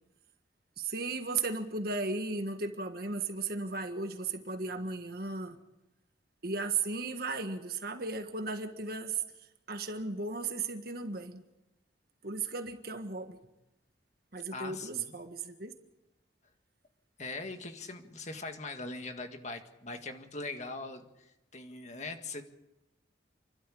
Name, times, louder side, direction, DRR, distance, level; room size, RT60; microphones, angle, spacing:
voice 1, 0.8-5.5 6.4-9.2 9.7-11.4 12.2-13.4 14.3-15.7, right 3 dB, 50° right, 6 dB, 1.6 m, -35 dB
voice 2, 14.5-15.1 17.2-21.1 21.5-22.4, left 3 dB, 35° left, 6 dB, 1.9 m, -41 dB
29.5 x 12.5 x 8.6 m, 0.95 s
head